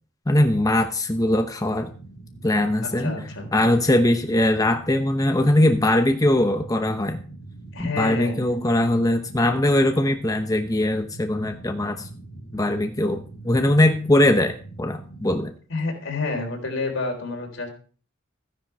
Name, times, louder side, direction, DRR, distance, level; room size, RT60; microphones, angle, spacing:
voice 1, 0.3-1.9 2.4-3.2 3.5-7.2 7.8-12.1 12.5-15.5, left 1 dB, 20° left, 5 dB, 0.9 m, -21 dB
sound 1, 1.6-15.4, right 2 dB, 55° left, 3.0 m, -42 dB
voice 2, 2.8-3.5 7.7-8.7 15.7-17.7, left 3 dB, 75° left, 3 dB, 4.0 m, -29 dB
15.0 x 9.9 x 4.7 m, 0.42 s
head